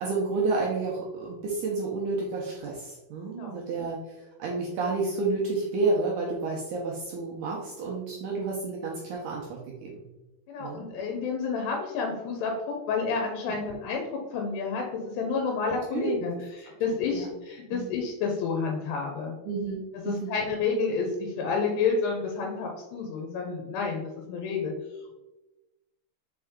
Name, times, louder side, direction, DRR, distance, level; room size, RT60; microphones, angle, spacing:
voice 1, 0.0-10.0 10.6-10.9 13.4-13.5 15.9-16.1 17.1-17.3 17.7-17.9 19.5-20.3, right 3 dB, 85° right, -3 dB, 1.7 m, -30 dB
voice 2, 3.3-3.6 10.5-19.4 19.9-24.7, left 5 dB, 90° left, 1 dB, 2.9 m, -30 dB
6.0 x 4.4 x 3.6 m, 1.1 s
omnidirectional pair, 4.6 m